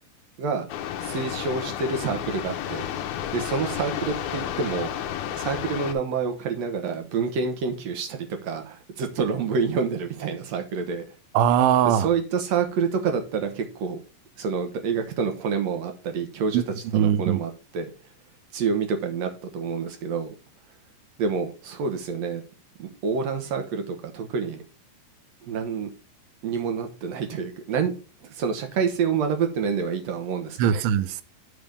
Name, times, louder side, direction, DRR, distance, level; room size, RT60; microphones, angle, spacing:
sound 1, 0.7-5.9, left 10 dB, 75° left, 1.8 m, -31 dB
voice 1, 1.0-2.9 3.3-4.9 5.4-11.1 11.8-14.0 14.4-16.6 16.9-17.9 18.5-20.3 21.2-22.4 22.8-24.6 25.4-25.9 26.4-27.9 28.2-30.8, right 5 dB, 65° right, 1.8 m, -28 dB
voice 2, 11.3-12.1 16.5-16.6 16.9-17.4 30.6-31.2, right 9 dB, 90° right, 2.5 m, -20 dB
8.0 x 3.5 x 6.6 m
omnidirectional pair, 4.2 m